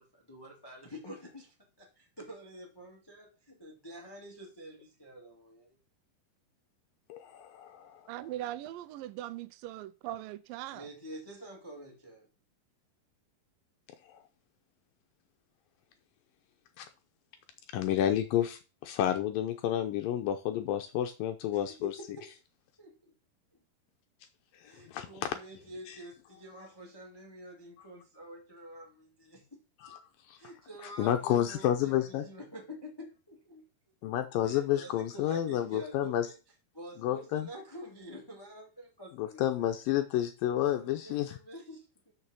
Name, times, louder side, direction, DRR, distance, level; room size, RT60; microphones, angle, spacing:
voice 1, 0.0-5.8 10.7-12.3 21.5-22.3 22.8-23.1 24.6-30.0 30.4-33.6 34.4-36.3 36.7-39.8 40.6-42.1, equal, 15° left, 0.9 m, -48 dB
voice 2, 7.1-8.1 14.1-14.2 16.8-16.9 17.7-21.9 24.6-25.3 29.8-30.0 30.3-30.4 31.0-32.3 34.0-36.3 37.0-37.5 39.2-41.4, left 11 dB, 75° left, 2.2 m, -30 dB
voice 3, 8.1-10.9, right 14 dB, 80° right, 2.1 m, -40 dB
6.6 x 5.9 x 6.1 m
omnidirectional pair, 4.5 m